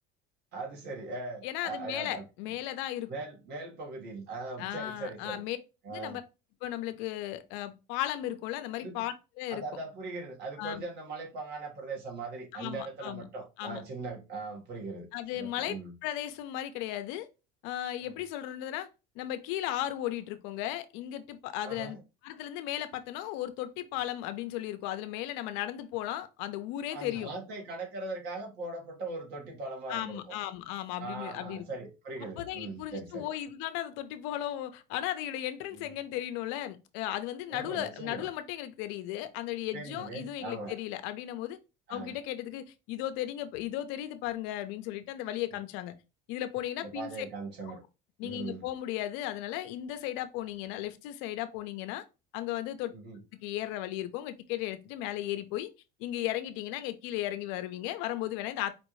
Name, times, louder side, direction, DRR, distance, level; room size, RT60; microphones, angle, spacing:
voice 1, 0.5-2.2 3.1-5.4 5.8-6.2 8.8-9.1 9.5-15.1 15.3-15.9 18.0-18.2 21.6-22.0 26.9-30.4 31.0-33.3 35.7-35.9 37.5-38.3 39.7-40.7 41.9-42.1 46.8-47.8 48.2-48.7 52.9-53.2, right 3 dB, 60° right, 1.7 m, -40 dB
voice 2, 1.4-3.1 4.6-5.6 5.9-6.2 6.6-9.6 10.6-10.8 12.5-13.2 13.6-13.8 15.1-17.3 17.6-18.9 19.2-22.0 22.2-27.3 29.9-31.7 32.4-41.6 41.9-46.0 46.3-47.3 48.2-52.0 52.3-52.9 53.4-55.7 56.0-58.7, left 13 dB, 80° left, 0.6 m, -35 dB
4.9 x 2.6 x 3.1 m
cardioid pair, 115°, 19 cm